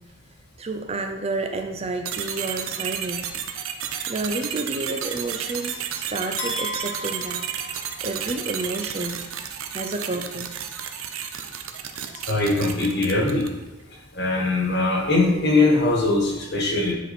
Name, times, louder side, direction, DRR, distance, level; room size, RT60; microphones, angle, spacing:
voice 1, 0.6-3.3 4.1-7.5 8.0-9.2 9.7-10.5, right 2 dB, 30° right, 5 dB, 0.5 m, -30 dB
sound 1, 2.0-13.6, right 8 dB, 70° right, 0.7 m, -32 dB
sound 2, 6.4-8.5, left 1 dB, 70° left, 1.0 m, -35 dB
voice 2, 12.3-13.5 14.1-16.9, left 2 dB, 50° left, -1 dB, 1.5 m, -21 dB
9.8 x 4.4 x 4.2 m, 1.1 s
head